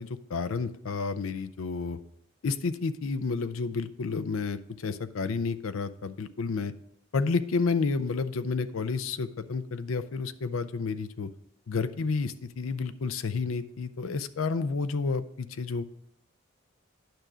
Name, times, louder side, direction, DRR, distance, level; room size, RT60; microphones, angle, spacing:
voice 1, 0.0-2.0 2.4-6.7 7.1-11.3 11.7-15.8, left 4 dB, 90° left, 13 dB, 0.5 m, -30 dB
9.3 x 6.1 x 5.0 m, 0.76 s
head